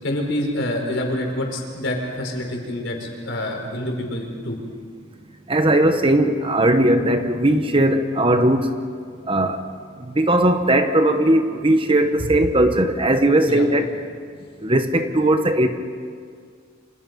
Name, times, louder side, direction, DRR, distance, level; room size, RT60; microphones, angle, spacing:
voice 1, 0.0-4.6 13.4-13.7, left 1 dB, 70° left, 1 dB, 5.2 m, -27 dB
voice 2, 5.5-8.7 9.3-9.6 10.0-13.9 14.6-15.7, right 1 dB, 25° right, 7 dB, 1.2 m, -18 dB
29.0 x 27.0 x 5.5 m, 2.1 s
head